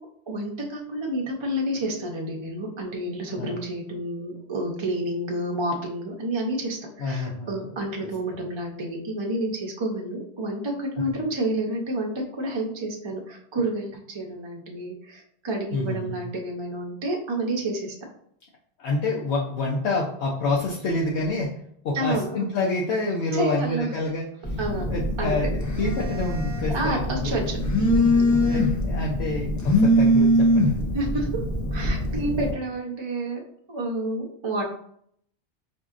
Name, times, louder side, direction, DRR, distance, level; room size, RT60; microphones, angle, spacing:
voice 1, 0.0-17.9 21.9-22.4 23.3-23.9 24.6-25.5 26.7-28.6 30.9-31.3 31.7-33.4 33.7-34.6, right 1 dB, 35° right, -1 dB, 0.4 m, -29 dB
voice 2, 7.0-7.7 11.0-11.1 15.7-16.3 18.8-21.5 21.8-24.5 24.9-27.4 28.4-30.7, left 2 dB, 75° left, -3 dB, 0.9 m, -28 dB
Telephone, 24.4-32.5, equal, 25° left, 0.4 m, -23 dB
5.1 x 2.7 x 2.4 m, 0.66 s
omnidirectional pair, 1.1 m